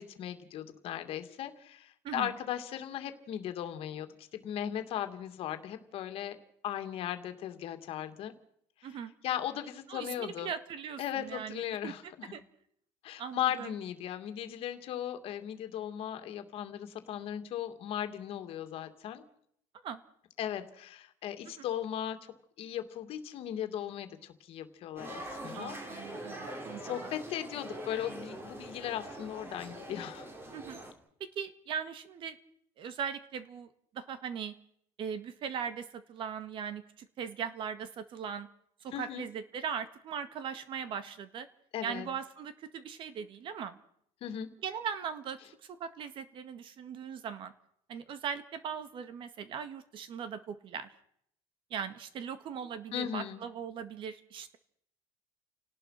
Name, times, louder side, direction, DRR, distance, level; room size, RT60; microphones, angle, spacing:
voice 1, 0.0-6.4 6.6-8.3 9.2-10.5 11.0-12.3 13.0-19.2 20.4-22.2 22.6-25.8 26.1-26.2 26.8-30.3 38.9-39.3 41.7-42.1 44.2-44.5 52.9-53.4, left 10 dB, 45° left, 8 dB, 2.4 m, -37 dB
voice 2, 8.8-9.1 9.9-11.9 12.3-12.4 13.2-13.7 19.8-20.0 21.6-21.7 25.5-26.8 30.5-30.8 31.2-32.4 32.8-34.5 35.0-38.5 38.8-41.5 41.8-43.8 44.6-47.5 47.9-50.9 51.7-54.6, right 7 dB, 40° right, 12 dB, 1.9 m, -39 dB
sound 1, 25.0-30.9, right 1 dB, 15° right, 3.7 m, -43 dB
29.5 x 19.0 x 5.8 m, 0.69 s
cardioid pair, 170°, 14 cm